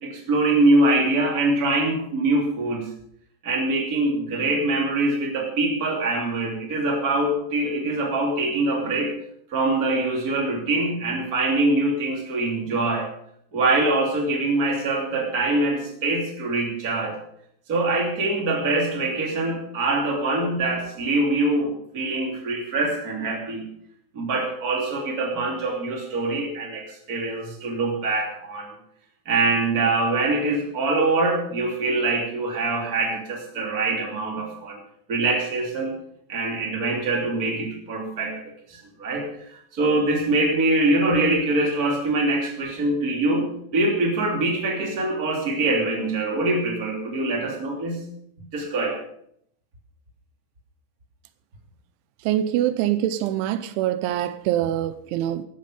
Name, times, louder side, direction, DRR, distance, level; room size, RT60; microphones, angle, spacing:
voice 1, 0.0-2.9 3.4-9.1 9.5-13.1 13.5-17.2 17.7-23.7 24.1-28.7 29.2-34.8 35.1-35.9 36.3-38.4 38.7-48.0 48.4-49.0, right 2 dB, 25° right, 2.6 m, -24 dB
voice 2, 52.3-55.5, right 12 dB, 85° right, 3.1 m, -24 dB
14.5 x 12.5 x 5.1 m
omnidirectional pair, 5.4 m